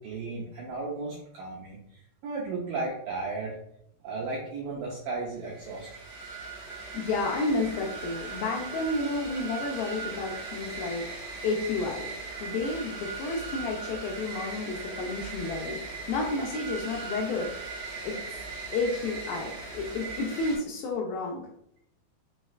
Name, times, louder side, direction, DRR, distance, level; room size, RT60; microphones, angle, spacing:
voice 1, 0.0-1.8 2.2-3.6 4.0-5.9, right 3 dB, 90° right, -4 dB, 1.9 m, -34 dB
sound 1, 5.4-20.6, right 4 dB, 60° right, 1.6 m, -39 dB
voice 2, 6.9-11.1 11.4-12.1 12.4-15.8 16.1-17.5 18.0-18.2 18.7-21.4, left 3 dB, 80° left, -1 dB, 2.2 m, -31 dB
6.2 x 3.1 x 2.4 m, 0.75 s
omnidirectional pair, 4.8 m